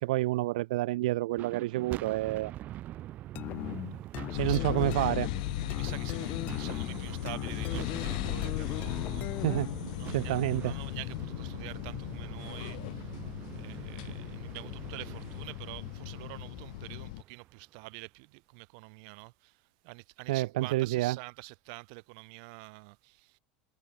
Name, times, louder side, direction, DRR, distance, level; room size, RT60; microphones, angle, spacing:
voice 1, 0.0-2.5 4.4-5.3 9.4-9.7 10.1-10.7 20.3-21.2, right 17 dB, 90° right, 1.1 m, -29 dB
sound 1, 1.3-17.7, right 14 dB, 40° right, 2.7 m, -44 dB
sound 2, 3.4-9.8, left 17 dB, 45° left, 1.1 m, -38 dB
sound 3, 4.3-17.2, left 21 dB, 75° left, 0.6 m, -37 dB
voice 2, 4.3-4.7 5.7-9.4 10.0-10.4 10.6-13.1 13.5-19.6 19.8-23.4, right 34 dB, 65° right, 4.8 m, -47 dB
supercardioid pair, 150°, 4 cm